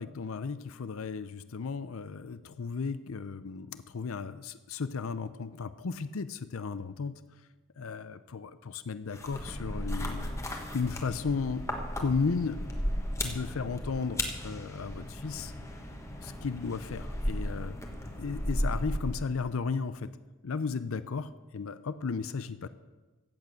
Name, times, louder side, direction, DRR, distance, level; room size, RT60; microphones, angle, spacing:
voice 1, 0.0-7.1 7.8-10.4 10.7-11.7 12.0-12.6 13.2-15.5 16.2-17.8 18.2-20.2 20.4-22.7, left 5 dB, 75° left, 13 dB, 0.5 m, -34 dB
sound 1, 9.1-19.5, equal, 15° left, 1.3 m, -35 dB
13.5 x 8.4 x 7.7 m, 1.2 s
head